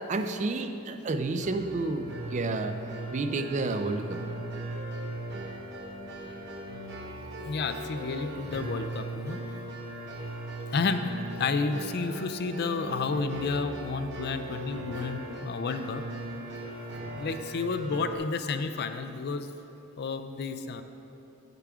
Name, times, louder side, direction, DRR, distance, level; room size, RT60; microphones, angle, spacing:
voice 1, 0.1-2.8 3.1-4.2, right 3 dB, 35° right, 8 dB, 0.4 m, -30 dB
sound 1, 1.4-18.2, right 1 dB, 50° right, 0.9 m, -39 dB
voice 2, 7.4-9.4 10.7-16.0 17.2-19.5 20.0-20.8, left 4 dB, 50° left, 9 dB, 0.4 m, -31 dB
9.0 x 6.8 x 4.8 m, 2.9 s
head